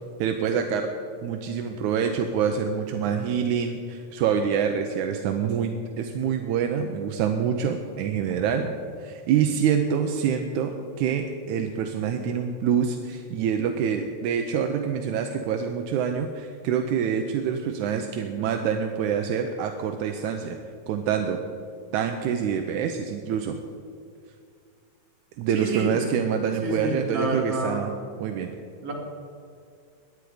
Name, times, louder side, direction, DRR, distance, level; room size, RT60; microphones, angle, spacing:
voice 1, 0.2-0.9 1.2-20.6 20.9-21.4 21.9-23.6 25.4-27.9 28.2-28.6, right 7 dB, 85° right, 5 dB, 2.2 m, -26 dB
voice 2, 25.5-25.9 26.6-27.8 28.8-28.9, right 2 dB, 55° right, -1 dB, 3.5 m, -28 dB
18.0 x 11.0 x 5.0 m, 2.3 s
omnidirectional pair, 3.4 m